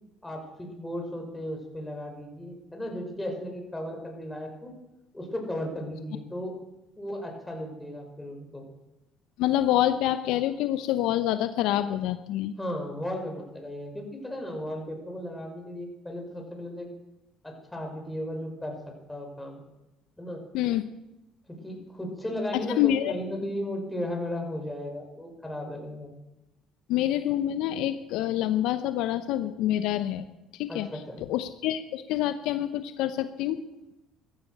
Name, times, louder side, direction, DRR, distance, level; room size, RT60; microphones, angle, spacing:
voice 1, 0.2-4.8 5.1-6.6 7.0-8.7 12.6-16.9 17.4-19.6 20.2-20.4 21.5-26.1 30.7-31.2, left 1 dB, 10° left, 2 dB, 5.9 m, -35 dB
voice 2, 9.4-12.5 20.5-20.8 22.8-23.1 26.9-30.3 30.6-30.9 31.3-33.6, left 12 dB, 70° left, 11 dB, 0.7 m, -26 dB
14.5 x 14.5 x 6.5 m, 0.96 s
hypercardioid pair, 65°, 0 cm